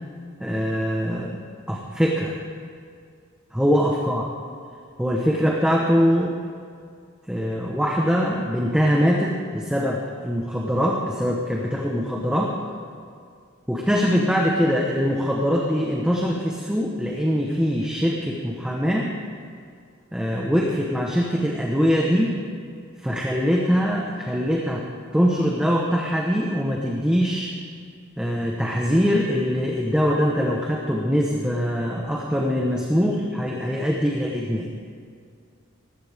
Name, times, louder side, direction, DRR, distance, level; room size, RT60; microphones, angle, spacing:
voice 1, 0.4-1.4 1.7-2.4 3.5-4.3 5.0-6.3 7.3-12.6 13.7-19.1 20.1-22.3 23.0-24.8 25.1-27.5 28.2-34.7, equal, 5° right, -2 dB, 1.2 m, -22 dB
20.0 x 16.0 x 3.7 m, 2.2 s
head